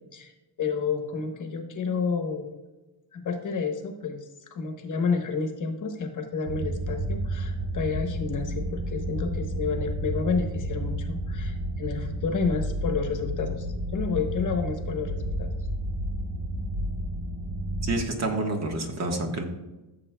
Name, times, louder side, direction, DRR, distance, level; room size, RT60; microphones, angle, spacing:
voice 1, 0.6-2.5 3.1-4.2 4.5-13.7 13.9-15.5, left 5 dB, 40° left, 4 dB, 1.2 m, -30 dB
sound 1, 6.4-18.0, right 1 dB, 85° right, 2.6 m, -31 dB
voice 2, 17.8-19.4, right 2 dB, 35° right, 3 dB, 1.4 m, -28 dB
14.5 x 7.3 x 2.3 m, 1.1 s
cardioid pair, 135°, 45 cm